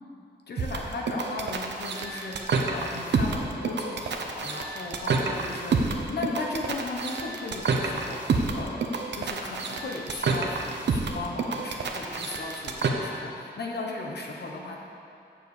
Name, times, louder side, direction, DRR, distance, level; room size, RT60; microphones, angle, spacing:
voice 1, 0.5-14.8, left 3 dB, 65° left, -1 dB, 1.1 m, -36 dB
sound 1, 0.6-12.9, right 4 dB, 75° right, 0.9 m, -28 dB
7.2 x 7.1 x 8.1 m, 2.5 s
wide cardioid pair, 135°, 18 cm